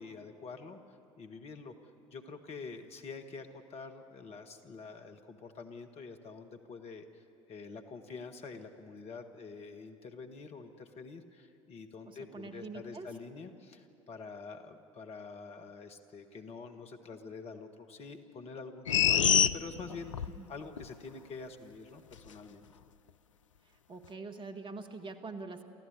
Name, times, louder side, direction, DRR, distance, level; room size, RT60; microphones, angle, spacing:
voice 1, 0.0-1.7 2.1-22.7, left 4 dB, 40° left, 6 dB, 1.6 m, -46 dB
voice 2, 12.1-13.1 20.3-20.5 23.6-25.6, right 3 dB, 30° right, 6 dB, 1.7 m, -44 dB
sound 1, 18.9-20.4 20.8-20.9, left 9 dB, 75° left, 0.4 m, -25 dB
28.5 x 14.5 x 8.4 m, 2.6 s
figure-of-eight pair, 65°, 16 cm